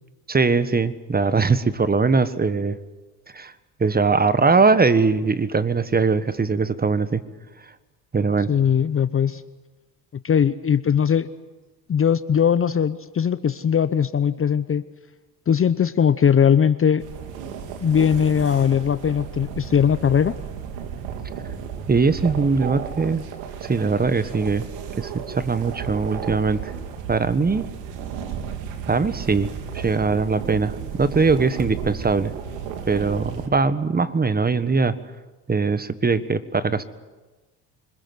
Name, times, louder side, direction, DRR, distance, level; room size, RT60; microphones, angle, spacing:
voice 1, 0.3-2.8 3.3-3.5 3.8-7.2 8.1-8.5 21.9-23.2 23.6-24.7 25.0-26.7 27.1-27.7 28.9-32.3 32.9-35.0 35.5-36.8, right 4 dB, 20° right, 14 dB, 1.4 m, -21 dB
voice 2, 8.5-9.4 10.2-11.3 11.9-14.8 15.5-17.0 17.8-20.4, left 8 dB, 30° left, 14 dB, 0.8 m, -19 dB
sound 1, 17.0-33.5, right 7 dB, 75° right, 2.8 m, -33 dB
26.0 x 21.0 x 7.9 m, 1.2 s
hypercardioid pair, 70°, 47 cm